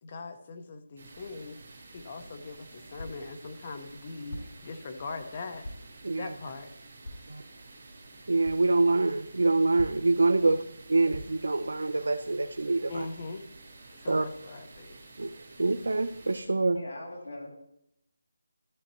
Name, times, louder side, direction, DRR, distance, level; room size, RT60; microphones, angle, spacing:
voice 1, 0.0-1.6 1.9-5.7 6.1-6.7 10.4-10.6 12.9-13.4 13.9-15.0, left 3 dB, 20° left, 7 dB, 0.6 m, -41 dB
sound 1, 1.0-16.4, right 3 dB, 35° right, 3.8 m, -51 dB
sound 2, 3.0-3.3 4.3-4.7 5.6-6.0 7.0-7.4 8.4-8.7 9.8-10.2 11.1-11.5, left 1 dB, 80° left, 3.2 m, -42 dB
voice 2, 8.3-10.6 10.9-13.0 14.1-14.2 15.2-16.8, right 3 dB, 75° right, 8 dB, 0.6 m, -25 dB
voice 3, 16.7-17.5, left 1 dB, 40° left, -3 dB, 2.9 m, -40 dB
14.0 x 8.3 x 3.0 m, 0.77 s
figure-of-eight pair, 180°, 0 cm